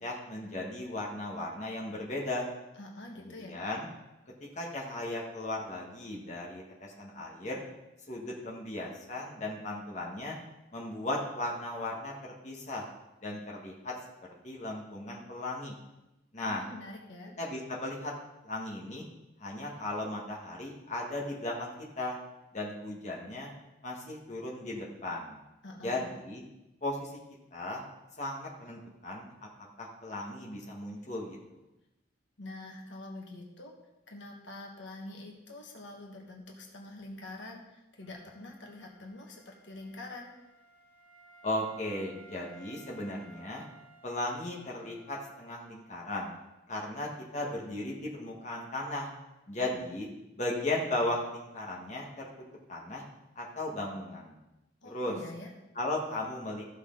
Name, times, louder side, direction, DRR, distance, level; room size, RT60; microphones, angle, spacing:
voice 1, 0.0-2.5 3.2-3.9 4.5-7.6 8.1-10.4 10.7-12.1 12.4-12.8 13.2-13.9 14.4-15.7 16.3-16.6 17.4-18.1 18.4-19.0 19.4-22.2 22.5-23.5 23.8-25.4 25.8-26.4 26.8-27.1 27.5-27.8 28.2-29.3 29.8-31.4 41.4-43.6 44.0-46.3 46.7-49.1 49.5-50.1 50.4-52.1 52.7-53.0 53.3-54.4 54.9-55.2 55.7-56.6, left 1 dB, 35° left, -2 dB, 1.6 m, -36 dB
voice 2, 2.8-3.6 16.4-17.3 25.6-26.1 32.4-33.7 34.1-40.3 54.8-55.5, left 2 dB, 70° left, 0 dB, 1.5 m, -45 dB
Wind instrument woodwind instrument, 38.0-45.8, right 3 dB, 10° left, 3.1 m, -58 dB
14.5 x 6.4 x 3.9 m, 0.96 s
head